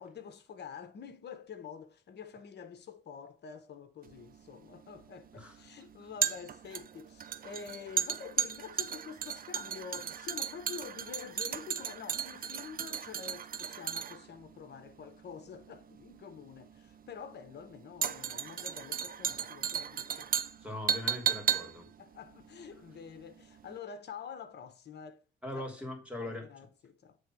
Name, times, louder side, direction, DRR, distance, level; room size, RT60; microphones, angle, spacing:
voice 1, 0.0-20.3 22.0-25.2 25.5-25.7 26.2-27.2, left 7 dB, 60° left, 1.2 m, -47 dB
sound 1, 4.1-23.3 23.6-23.7, right 8 dB, 45° right, 0.6 m, -35 dB
voice 2, 20.6-21.9 25.4-26.5, left 1 dB, 5° right, 3.0 m, -40 dB
8.3 x 3.6 x 6.2 m
cardioid pair, 90°, 20 cm